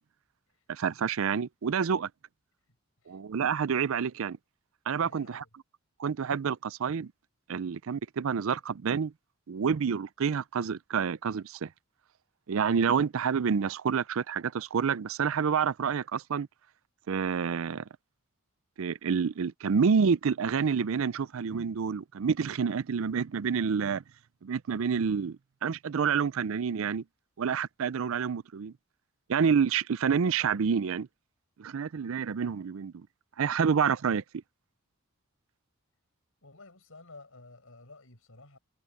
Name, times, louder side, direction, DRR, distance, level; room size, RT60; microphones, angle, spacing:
voice 1, 0.7-2.1 3.1-4.4 4.9-5.4 6.0-7.1 7.5-9.1 9.5-11.7 12.5-16.5 17.1-17.8 18.8-24.0 24.4-27.0 27.4-28.7 29.3-31.1 31.6-33.1 33.4-34.2, right 6 dB, 65° right, 0.4 m, -28 dB
voice 2, 5.0-5.5 36.4-38.6, left 3 dB, 70° left, 5.0 m, -52 dB
head